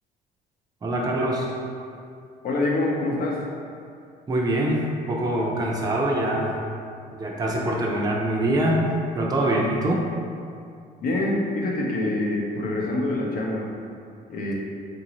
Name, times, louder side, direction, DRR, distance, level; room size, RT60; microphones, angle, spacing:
voice 1, 0.8-1.6 4.3-6.6 7.1-8.8 9.2-10.0, right 1 dB, 25° right, -3 dB, 0.5 m, -24 dB
voice 2, 2.4-3.4 11.0-13.7 14.3-14.5, left 2 dB, 60° left, -2 dB, 0.7 m, -25 dB
3.9 x 2.6 x 2.9 m, 2.4 s
cardioid pair, 110°, 17 cm